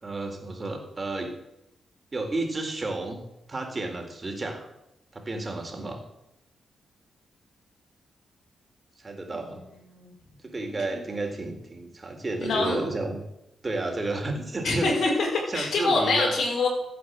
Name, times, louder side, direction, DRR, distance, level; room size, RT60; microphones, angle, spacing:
voice 1, 0.0-1.4 2.1-3.2 3.5-4.7 5.1-6.0 9.0-9.6 10.4-13.2 13.6-14.9 15.5-16.3, right 2 dB, 30° right, 3 dB, 3.8 m, -31 dB
voice 2, 12.4-12.8 14.6-16.7, left 3 dB, 75° left, -1 dB, 5.4 m, -25 dB
15.0 x 8.7 x 8.0 m, 0.85 s
cardioid pair, 85°, 0 cm